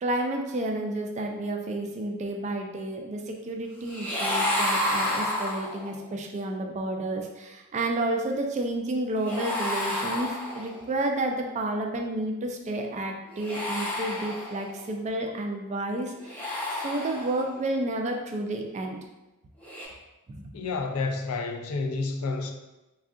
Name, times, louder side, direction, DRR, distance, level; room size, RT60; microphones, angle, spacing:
voice 1, 0.0-16.4 16.8-19.0 20.3-20.5, right 1 dB, 30° right, 2 dB, 0.3 m, -31 dB
sound 1, 3.9-6.0 9.2-10.9 13.3-14.8 16.2-17.6 19.6-19.8, left 1 dB, 5° left, 0.6 m, -30 dB
voice 2, 20.5-22.5, left 3 dB, 70° left, 3 dB, 0.4 m, -30 dB
3.5 x 2.3 x 2.5 m, 1.0 s
head